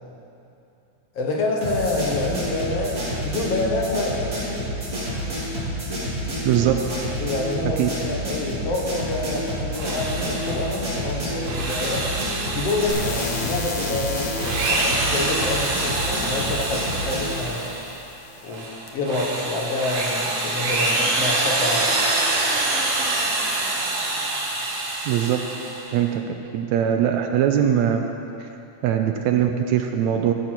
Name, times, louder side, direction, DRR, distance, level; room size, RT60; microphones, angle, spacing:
voice 1, 1.2-4.4 7.2-12.1 12.5-17.6 18.4-18.7 18.9-21.9, left 2 dB, 60° left, -2 dB, 2.0 m, -27 dB
sound 1, 1.6-17.3, equal, 30° right, 3.5 m, -29 dB
Drill, 9.7-10.8 11.3-13.7 14.3-18.0 18.5-25.9, right 2 dB, 55° right, 2.3 m, -26 dB
sound 2, 12.9-18.9, left 4 dB, 75° left, 2.5 m, -36 dB
voice 2, 25.1-25.4 25.9-26.2 26.5-28.0 28.4-28.5 28.8-30.3, right 10 dB, 80° right, 4 dB, 1.8 m, -21 dB
14.0 x 7.0 x 5.9 m, 2.8 s
omnidirectional pair, 3.5 m